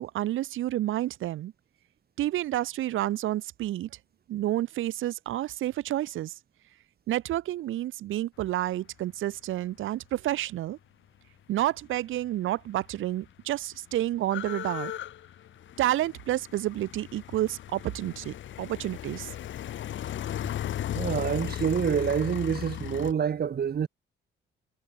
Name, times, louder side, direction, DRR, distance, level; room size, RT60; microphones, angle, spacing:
voice 1, 0.0-1.5 2.2-3.9 4.3-6.3 7.1-10.8 11.5-14.9 15.8-19.3, right 14 dB, 85° right, 4.9 m, -30 dB
sound 1, 12.5-12.6 12.7-23.1, left 11 dB, 70° left, 4.2 m, -36 dB
voice 2, 20.9-23.9, right 7 dB, 50° right, 4.2 m, -27 dB
cardioid pair, 90°, 20 cm